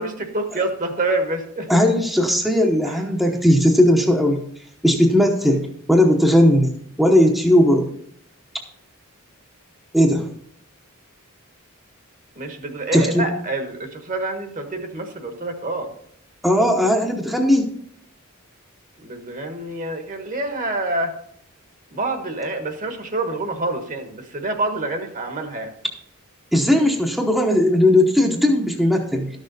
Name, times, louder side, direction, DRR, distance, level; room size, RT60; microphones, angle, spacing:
voice 1, 0.0-1.8 2.9-3.0 12.4-15.9 19.0-21.1 21.9-25.7, right 2 dB, 40° right, 6 dB, 1.3 m, -27 dB
voice 2, 1.7-4.4 4.8-7.9 9.9-10.2 12.9-13.3 16.4-17.7 26.5-29.3, left 1 dB, ahead, 0 dB, 0.9 m, -17 dB
12.5 x 6.5 x 4.0 m, 0.67 s
head